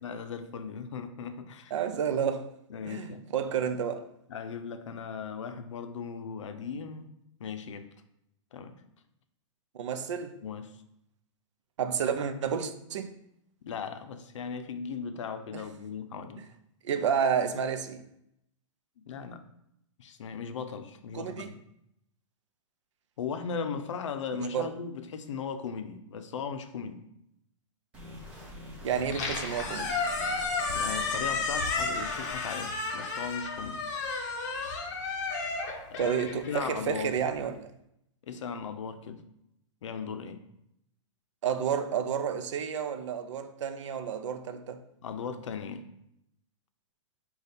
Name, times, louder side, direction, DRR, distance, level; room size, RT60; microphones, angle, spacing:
voice 1, 0.0-1.7 2.7-3.2 4.3-7.1 7.4-7.9 8.5-8.8 10.4-10.7 13.6-16.4 19.0-19.4 20.0-21.6 23.2-27.0 30.7-33.8 35.9-36.0 36.5-37.1 38.3-39.2 39.8-40.4 45.0-45.9, left 6 dB, 75° left, 0.5 m, -37 dB
voice 2, 1.7-2.5 2.8-4.0 9.7-10.3 11.8-13.1 15.5-15.6 16.8-18.0 21.1-21.5 24.5-24.7 28.8-29.9 36.0-37.7 41.4-44.8, right 7 dB, 70° right, 0.5 m, -30 dB
sound 1, 27.9-32.3, left 1 dB, 10° right, 0.4 m, -45 dB
Squeak, 29.0-37.2, left 4 dB, 35° left, 0.7 m, -32 dB
5.0 x 2.3 x 4.1 m
hypercardioid pair, 175°, 16 cm